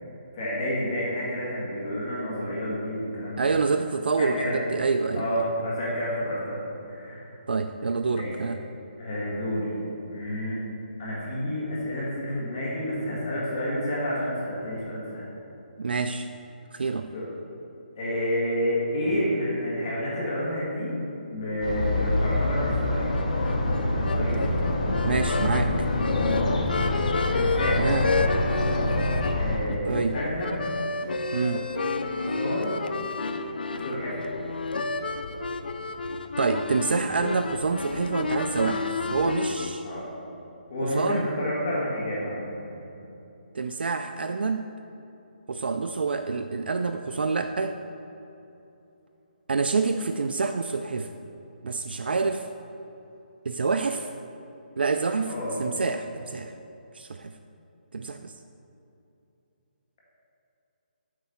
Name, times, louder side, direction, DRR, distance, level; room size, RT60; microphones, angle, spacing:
voice 1, 0.3-3.5 4.2-4.6 5.1-7.3 8.1-8.3 9.0-9.8 10.1-10.6 11.0-15.3 17.1-17.2 17.9-20.9 21.3-23.1 24.1-24.4 27.3-27.8 29.3-30.6 32.2-32.7 33.8-34.2 39.8-40.1 40.7-42.8 55.3-55.5, equal, 25° left, -7 dB, 1.7 m, -29 dB
voice 2, 3.4-5.3 7.5-8.6 15.8-16.3 16.7-17.1 25.0-25.7 27.8-28.1 29.9-30.2 31.3-31.7 36.4-39.8 40.8-41.3 43.5-44.7 45.5-47.8 49.5-51.1 51.6-52.5 53.5-54.1 54.8-55.3 55.6-56.5 56.9-57.3 57.9-58.3, right 4 dB, 75° right, 8 dB, 0.4 m, -27 dB
sound 1, 21.6-29.6, left 2 dB, 45° left, 1.2 m, -26 dB
sound 2, 23.1-39.7, left 3 dB, 65° left, 0.5 m, -31 dB
8.2 x 4.7 x 5.7 m, 2.9 s
hypercardioid pair, 175°, 5 cm